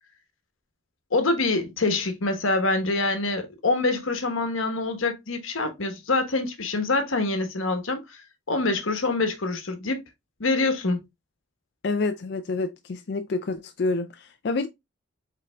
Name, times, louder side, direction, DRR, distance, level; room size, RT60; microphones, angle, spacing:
voice 1, 1.1-8.2 8.5-10.0 10.4-11.0, left 3 dB, 85° left, 1.2 m, -25 dB
voice 2, 11.8-14.7, left 3 dB, 55° left, 0.4 m, -28 dB
5.2 x 3.9 x 2.2 m
head